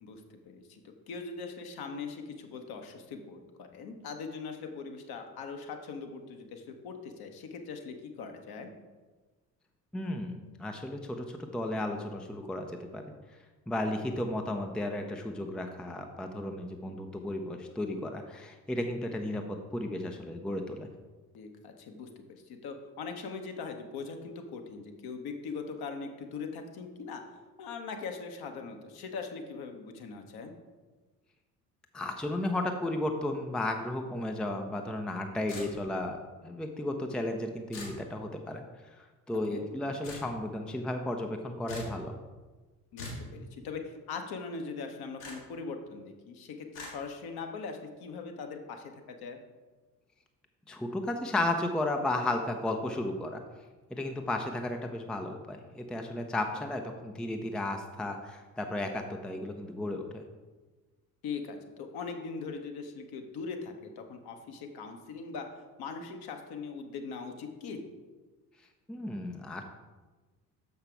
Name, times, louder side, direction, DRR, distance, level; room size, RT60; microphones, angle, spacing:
voice 1, 0.5-8.7 21.3-27.2 27.6-30.5 39.5-39.7 42.9-49.4 61.2-65.5 65.8-67.8, left 4 dB, 50° left, 5 dB, 1.1 m, -41 dB
voice 2, 9.9-13.0 13.7-20.9 31.9-42.1 50.7-53.4 53.9-60.2 68.9-69.6, left 1 dB, ahead, 4 dB, 0.6 m, -34 dB
sound 1, 35.5-36.0 37.7-38.0 40.0-40.3 41.7-42.0 43.0-43.3 45.2-45.4 46.7-46.9, left 2 dB, 75° left, 2.3 m, -41 dB
6.7 x 5.8 x 4.5 m, 1.3 s
figure-of-eight pair, 55°, 48 cm